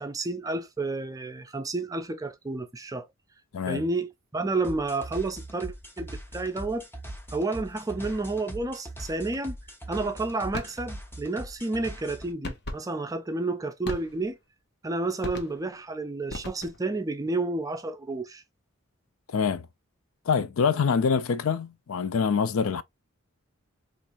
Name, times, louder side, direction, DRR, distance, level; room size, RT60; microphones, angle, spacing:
voice 1, 0.0-3.1 3.7-6.9 7.3-9.6 9.9-14.4 14.8-18.4, right 3 dB, 15° right, 0.4 m, -30 dB
sound 1, 4.6-12.3, right 1 dB, 10° left, 0.9 m, -41 dB
sound 2, 10.5-10.8 12.4-12.9 13.8-14.4 15.2-15.7 16.3-16.9, left 2 dB, 50° left, 0.9 m, -37 dB
voice 2, 19.3-19.7 20.3-22.8, left 6 dB, 75° left, 0.4 m, -25 dB
4.4 x 2.5 x 2.5 m
head